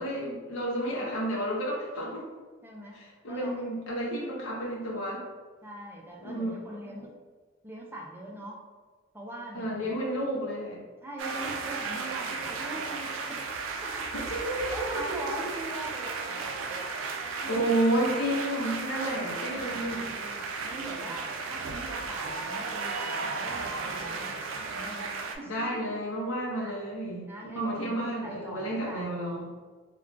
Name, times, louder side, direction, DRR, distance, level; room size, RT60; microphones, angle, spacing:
voice 1, 0.0-2.3 2.9-5.2 6.2-6.5 9.5-10.8 14.1-15.2 17.5-20.1 25.5-29.5, right 1 dB, 75° left, -4 dB, 0.6 m, -31 dB
voice 2, 2.6-3.0 3.3-3.5 5.6-7.1 7.6-8.6 9.1-9.9 11.0-14.1 14.5-17.6 20.2-20.4 20.6-24.4 24.7-25.9 26.6-26.8 27.3-29.2, right 1 dB, 10° right, -3 dB, 0.4 m, -42 dB
sound 1, 11.2-25.4, right 4 dB, 75° right, 0.3 m, -35 dB
2.3 x 2.2 x 3.7 m, 1.4 s
head